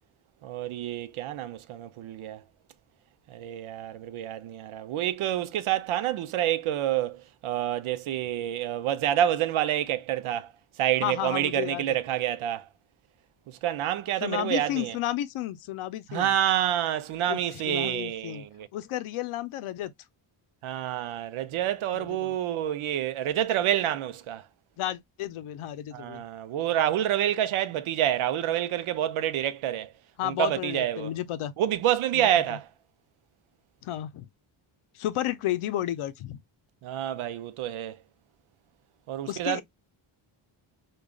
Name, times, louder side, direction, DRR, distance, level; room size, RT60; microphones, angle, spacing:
voice 1, 0.4-2.4 3.3-10.5 10.8-12.7 13.5-15.0 16.1-18.7 20.6-24.4 25.9-29.9 30.2-31.1 31.6-32.7 36.8-38.0 39.1-39.6, right 11 dB, 75° right, 0.6 m, -28 dB
voice 2, 11.0-12.0 14.2-16.3 17.3-18.5 18.7-19.9 21.9-22.4 24.8-26.2 30.2-31.5 32.1-32.6 33.8-34.3 34.9-36.4 39.3-39.6, left 12 dB, 80° left, 0.6 m, -32 dB
4.8 x 2.3 x 2.3 m
wide cardioid pair, 135°, 50 cm